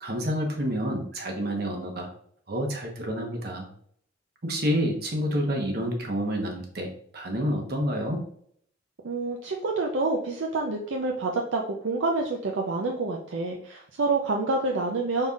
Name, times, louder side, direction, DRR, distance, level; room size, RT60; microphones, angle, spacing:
voice 1, 0.0-2.1 2.5-3.7 4.4-6.9 7.1-8.2, equal, 50° right, 2 dB, 1.1 m, -28 dB
voice 2, 9.0-15.3, right 3 dB, 70° right, 1 dB, 0.5 m, -27 dB
5.4 x 4.0 x 2.4 m, 0.64 s
head